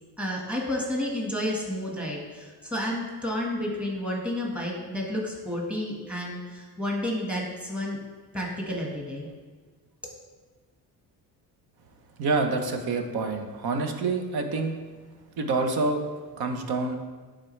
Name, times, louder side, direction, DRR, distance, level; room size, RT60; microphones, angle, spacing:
voice 1, 0.2-8.0 8.3-9.3, left 1 dB, 5° right, -3 dB, 1.5 m, -31 dB
voice 2, 12.2-14.8 15.4-16.0 16.4-17.0, right 3 dB, 65° right, 5 dB, 1.0 m, -27 dB
11.0 x 3.8 x 3.2 m, 1.4 s
cardioid pair, 105°, 40 cm